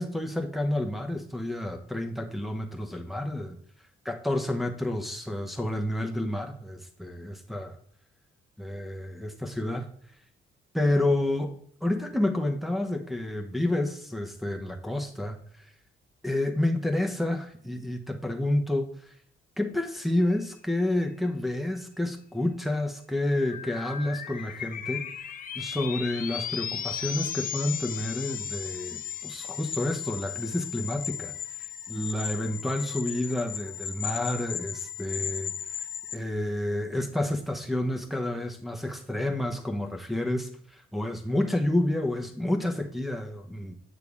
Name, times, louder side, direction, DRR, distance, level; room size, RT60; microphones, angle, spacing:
voice 1, 0.0-3.6 4.1-7.7 8.6-9.9 10.7-11.5 11.8-15.4 16.2-19.1 19.6-25.0 25.5-31.3 31.9-35.5 36.1-43.7, left 1 dB, ahead, 3 dB, 0.7 m, -29 dB
sound 1, 23.2-36.2, left 9 dB, 45° left, 0.5 m, -36 dB
8.0 x 6.7 x 2.4 m, 0.64 s
cardioid pair, 90°, 20 cm